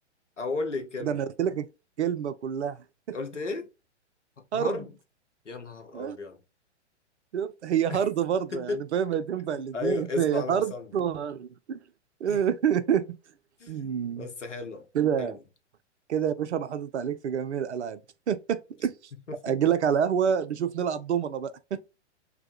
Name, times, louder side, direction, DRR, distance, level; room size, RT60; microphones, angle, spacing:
voice 1, 0.4-1.2 3.1-3.7 4.4-4.9 5.4-6.4 7.9-8.0 8.5-8.8 9.7-10.9 12.3-12.4 13.6-14.9 15.2-15.4 19.3-19.6, left 3 dB, 85° left, 0.8 m, -34 dB
voice 2, 1.0-1.7 2.0-2.8 3.1-3.2 4.5-4.8 5.9-6.2 7.3-11.8 12.2-13.2 13.7-14.3 14.9-15.4 16.1-18.0 18.3-18.9 19.4-21.9, right 8 dB, 70° right, 0.5 m, -27 dB
3.3 x 2.1 x 2.8 m
figure-of-eight pair, 110°, 35 cm